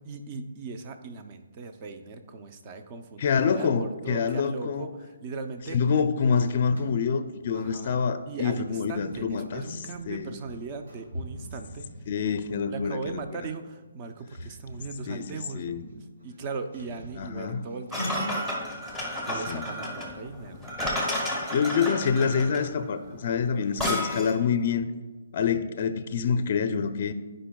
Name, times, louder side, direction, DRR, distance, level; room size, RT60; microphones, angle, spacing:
voice 1, 0.0-5.8 7.5-11.9 12.7-15.8 16.2-18.2 19.2-20.6, right 4 dB, 30° right, 7 dB, 0.6 m, -38 dB
voice 2, 3.2-4.9 5.7-9.6 10.1-10.3 12.1-13.2 15.1-15.8 17.2-17.6 19.5-19.6 21.5-24.9 25.3-27.1, left 6 dB, 45° left, 9 dB, 0.4 m, -26 dB
sound 1, 6.0-8.0 9.0-13.2 13.7-13.9 14.3-15.0 15.3-15.4 15.7-18.7, equal, 80° right, 2.5 m, -42 dB
sound 2, 17.9-24.4, left 1 dB, 10° right, 1.3 m, -31 dB
14.0 x 5.2 x 2.3 m, 1.3 s
hypercardioid pair, 160°, 0 cm